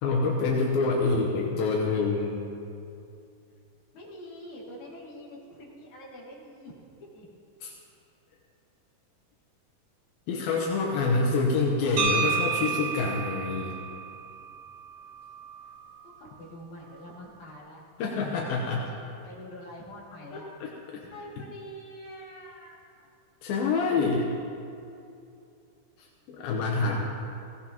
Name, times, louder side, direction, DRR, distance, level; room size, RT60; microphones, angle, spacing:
voice 1, 0.0-2.4 7.6-7.7 10.3-13.8 18.0-18.8 20.6-21.0 23.4-24.3 26.0-27.1, left 3 dB, 80° left, -1 dB, 2.8 m, -26 dB
voice 2, 3.9-6.8 7.1-7.3 16.0-19.0 19.2-20.5 21.0-23.1 26.8-27.1, left 1 dB, 55° left, -5 dB, 3.6 m, -45 dB
sound 1, 12.0-16.0, right 6 dB, 45° right, 2.0 m, -31 dB
18.0 x 17.0 x 3.0 m, 2.5 s
omnidirectional pair, 4.1 m